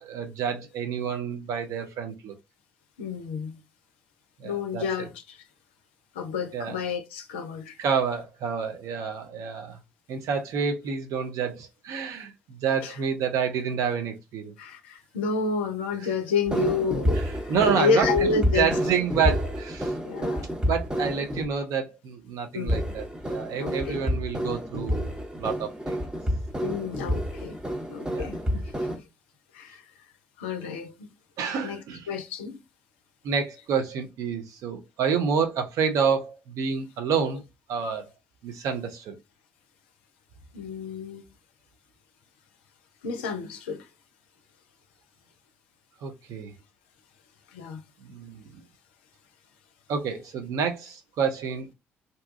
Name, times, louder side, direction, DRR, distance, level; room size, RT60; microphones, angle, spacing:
voice 1, 0.0-2.3 4.4-4.8 6.5-6.8 7.8-9.8 10.1-14.5 17.5-19.9 20.6-26.0 27.7-27.8 28.1-28.3 31.4-32.1 33.2-37.4 37.7-38.1 38.4-39.2 46.0-46.5 48.0-48.6 49.9-51.7, right 6 dB, 60° right, 0.6 m, -28 dB
voice 2, 3.0-3.6 4.4-5.4 6.1-7.8 12.8-13.0 14.6-18.7 20.0-20.5 21.0-21.1 22.5-22.9 23.6-24.0 26.6-27.6 27.9-29.0 29.5-29.8 30.4-30.9 31.6-31.8 32.1-32.6 40.5-41.2 43.0-43.9 47.5-47.8, left 5 dB, 75° left, 0.4 m, -30 dB
sound 1, 16.5-21.5 22.7-29.0, equal, 15° right, 0.9 m, -29 dB
2.7 x 2.2 x 2.5 m
figure-of-eight pair, 40°, 6 cm